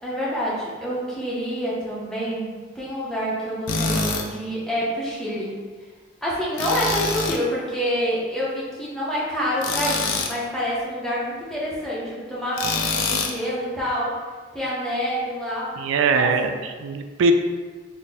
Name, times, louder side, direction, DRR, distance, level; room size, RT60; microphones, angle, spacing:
voice 1, 0.0-5.6 6.2-14.2 14.5-15.8 16.1-16.6, equal, 5° left, -7 dB, 0.6 m, -27 dB
Tools, 3.7-4.3 6.6-7.4 9.6-10.4 12.6-13.4, left 4 dB, 85° left, 0.4 m, -25 dB
voice 2, 15.8-17.3, right 4 dB, 85° right, 6 dB, 0.3 m, -21 dB
4.0 x 2.0 x 3.4 m, 1.5 s
head